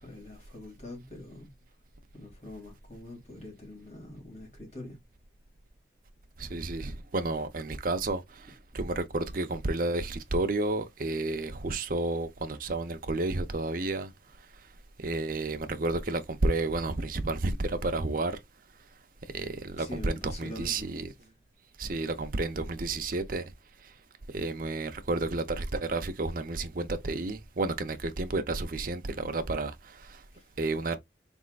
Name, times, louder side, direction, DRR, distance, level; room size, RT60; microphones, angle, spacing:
voice 1, 0.0-1.5 2.1-5.0 19.8-20.9 30.3-30.5, left 2 dB, 40° left, 2.4 m, -44 dB
voice 2, 6.4-14.1 15.0-18.4 19.3-21.1 21.8-23.5 24.3-30.2 30.6-31.0, right 2 dB, 50° right, 0.7 m, -31 dB
4.2 x 3.6 x 2.4 m
head